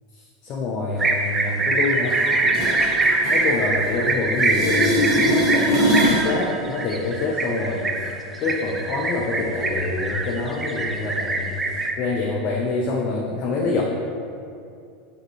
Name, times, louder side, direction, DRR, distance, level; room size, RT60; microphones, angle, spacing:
voice 1, 0.1-2.2 2.7-2.8 3.2-8.1 8.4-13.8, left 3 dB, 45° left, -2 dB, 0.4 m, -26 dB
sound 1, 1.0-11.9, right 3 dB, 20° right, 0.4 m, -23 dB
sound 2, 2.1-4.1 4.4-6.3 12.0-12.1, equal, 45° right, 1.2 m, -22 dB
5.7 x 2.8 x 3.1 m, 2.4 s
figure-of-eight pair, 80°, 0 cm